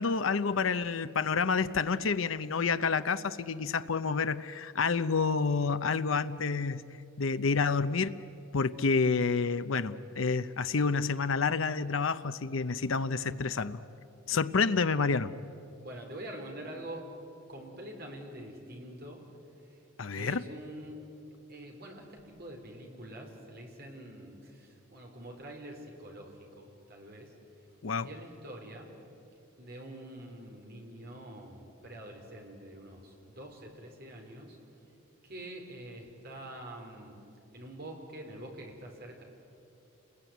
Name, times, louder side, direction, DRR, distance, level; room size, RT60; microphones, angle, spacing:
voice 1, 0.0-6.8 7.2-8.1 8.5-13.8 14.3-15.3 20.0-20.4 27.8-28.1, left 4 dB, 75° left, 11 dB, 0.7 m, -29 dB
voice 2, 15.8-17.1 17.5-19.2 19.6-19.8 20.1-21.0 21.5-27.3 27.9-28.9 29.6-34.6 35.2-37.2 37.5-39.2, right 1 dB, 50° right, 1 dB, 4.6 m, -45 dB
29.5 x 21.0 x 9.3 m, 2.8 s
head